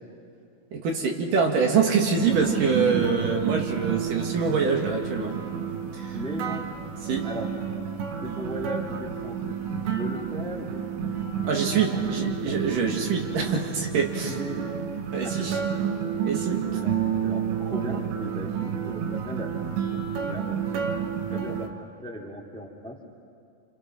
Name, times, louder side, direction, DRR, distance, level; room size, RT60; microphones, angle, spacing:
voice 1, 0.7-5.4 5.9-6.1 7.1-7.3 11.5-14.3 15.1-15.6 16.2-16.6, right 5 dB, 65° right, 1 dB, 3.5 m, -25 dB
sound 1, 2.1-21.7, right 8 dB, 80° right, 3.2 m, -30 dB
voice 2, 6.1-6.6 7.2-7.5 8.2-12.0 12.4-12.5 14.2-14.8 15.2-15.6 16.5-20.9 21.3-21.7 22.0-23.0, equal, ahead, -1 dB, 1.7 m, -38 dB
28.5 x 28.0 x 6.0 m, 2.4 s
omnidirectional pair, 4.3 m